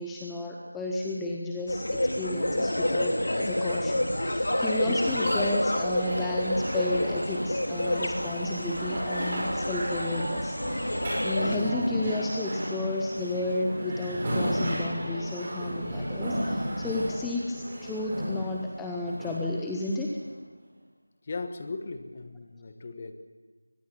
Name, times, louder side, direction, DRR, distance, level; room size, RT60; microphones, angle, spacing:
voice 1, 0.0-20.2, left 2 dB, 5° left, -2 dB, 0.8 m, -32 dB
sound 1, 1.7-11.6, left 1 dB, 60° left, 3.1 m, -29 dB
sound 2, 2.6-13.6, equal, 75° left, 3.2 m, -41 dB
sound 3, 3.3-20.3, equal, 20° right, 6.1 m, -34 dB
voice 2, 5.1-5.5 11.4-11.7 21.2-23.1, left 3 dB, 25° left, 9 dB, 1.3 m, -37 dB
24.0 x 19.5 x 7.3 m, 1.4 s
figure-of-eight pair, 170°, 0 cm